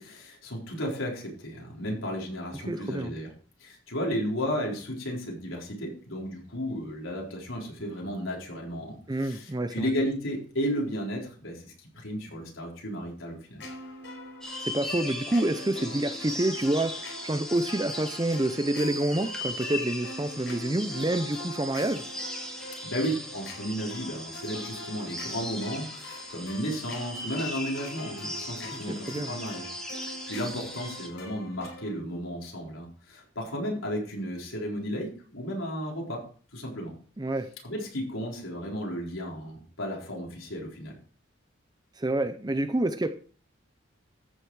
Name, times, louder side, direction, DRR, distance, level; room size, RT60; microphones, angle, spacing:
voice 1, 0.0-3.3 3.6-13.6 22.8-29.7 30.3-36.2 36.5-36.9 37.6-40.9, equal, 80° left, -2 dB, 4.1 m, -33 dB
voice 2, 2.7-3.1 9.1-9.9 14.6-22.0 28.7-29.3 37.2-37.5 42.0-43.1, right 1 dB, 20° right, 9 dB, 0.5 m, -28 dB
sound 1, 13.6-31.9, left 2 dB, 60° left, 5.3 m, -43 dB
sound 2, 14.4-31.1, left 1 dB, 5° left, 2.1 m, -39 dB
14.5 x 6.8 x 4.7 m, 0.43 s
head